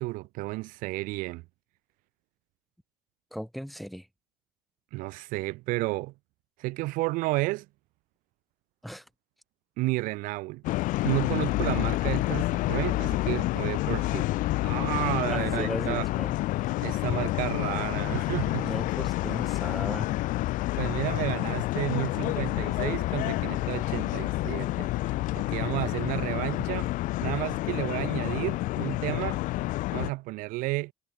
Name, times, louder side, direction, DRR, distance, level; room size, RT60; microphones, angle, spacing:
voice 1, 0.0-1.4 4.9-6.1 6.6-7.7 9.8-10.6 11.0-14.3 14.6-16.1 16.8-18.7 20.8-24.9 25.4-26.9 27.2-29.4 29.9-30.9, right 21 dB, 80° right, 0.6 m, -31 dB
voice 2, 3.3-4.1 8.8-9.0 15.3-16.3 16.7-16.9 18.6-20.1, equal, ahead, 1.5 m, -36 dB
sound 1, 10.6-30.1, left 18 dB, 75° left, 1.2 m, -29 dB
cardioid pair, 110°, 14 cm